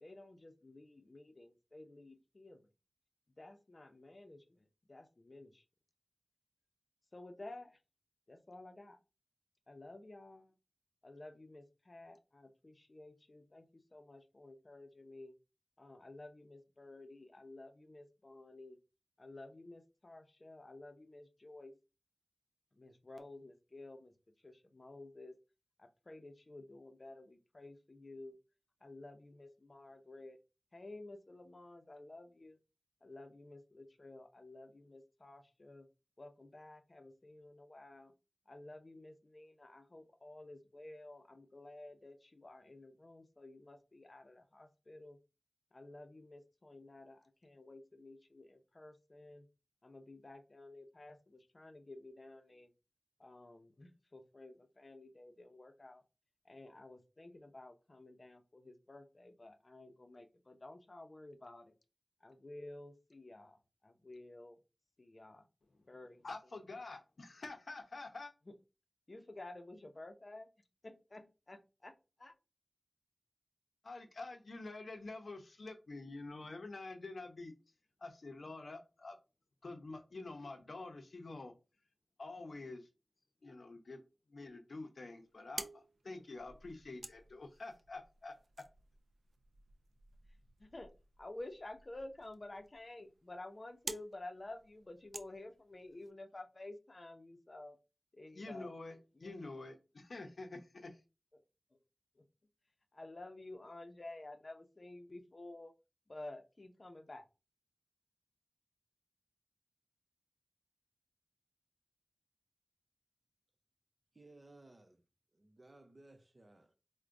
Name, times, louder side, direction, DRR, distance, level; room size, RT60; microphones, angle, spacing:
voice 1, 0.0-2.7 3.4-5.6 7.1-7.8 8.3-9.0 9.7-10.6 11.0-15.3 15.8-18.8 19.2-21.7 22.7-25.4 25.8-28.4 28.8-30.4 30.7-32.6 33.0-35.9 36.2-38.1 38.5-45.2 45.7-49.5 49.8-52.7 53.2-56.0 56.4-61.7 62.2-64.6 65.0-65.5 65.9-66.2 69.1-70.5 70.8-72.4 90.6-97.8 98.1-98.7 99.2-99.3 101.7-101.8 102.1-102.2 102.9-105.7 106.1-107.3, left 2 dB, 50° left, 0.6 m, -52 dB
voice 2, 66.2-68.3 73.8-79.2 79.6-81.6 82.2-82.9 83.4-84.0 84.3-88.7 98.3-101.0, left 3 dB, 90° left, 0.6 m, -48 dB
sound 1, 85.2-96.1, right 3 dB, 85° right, 0.3 m, -52 dB
voice 3, 114.1-115.0 115.3-116.7, right 2 dB, 45° right, 0.6 m, -60 dB
4.5 x 2.1 x 2.5 m
wide cardioid pair, 60°, 0 cm